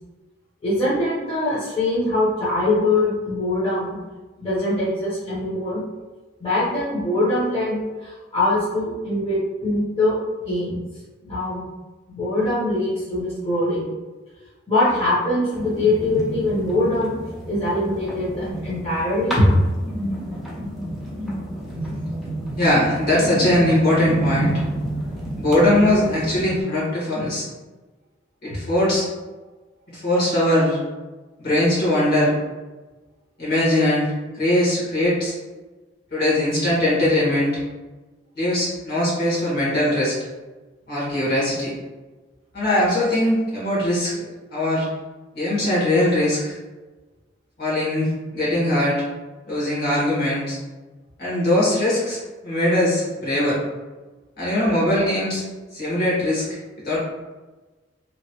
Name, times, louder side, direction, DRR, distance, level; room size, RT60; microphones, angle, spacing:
voice 1, 0.6-4.0 4.4-5.8 6.4-10.1 10.4-10.8 11.2-11.7 12.1-13.9 14.7-17.1 17.5-19.5, left 1 dB, 30° left, -11 dB, 1.0 m, -22 dB
sound 1, 15.5-26.6, right 1 dB, ahead, 0.6 m, -29 dB
voice 2, 22.6-24.5 25.4-27.5 28.4-29.1 29.9-30.8 31.4-32.4 33.4-35.3 36.1-37.6 38.4-40.2 40.9-41.7 42.5-44.1 44.5-44.9 45.3-46.6 47.6-49.0 49.5-50.6 51.2-53.6 54.4-55.4 55.7-56.6 56.8-57.0, left 1 dB, 55° left, -7 dB, 1.5 m, -21 dB
3.0 x 2.5 x 2.8 m, 1.2 s
head